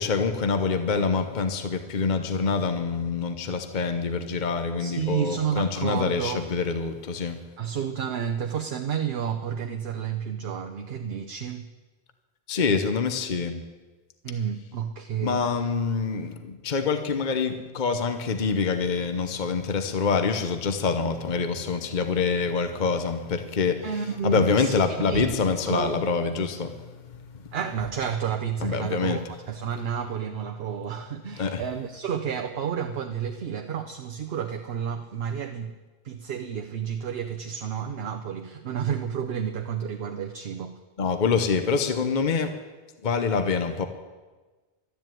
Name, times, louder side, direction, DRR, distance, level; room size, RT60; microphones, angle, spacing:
voice 1, 0.0-7.4 12.5-13.6 15.2-23.9 24.2-27.5 28.6-29.2 31.4-31.6 41.0-42.5 43.0-43.9, left 5 dB, 50° left, 8 dB, 1.0 m, -26 dB
voice 2, 4.8-6.4 7.6-11.7 14.2-15.7 23.8-26.0 27.5-35.8 36.0-40.8, right 8 dB, 70° right, 5 dB, 1.0 m, -31 dB
12.5 x 10.5 x 9.1 m, 1.3 s
omnidirectional pair, 1.1 m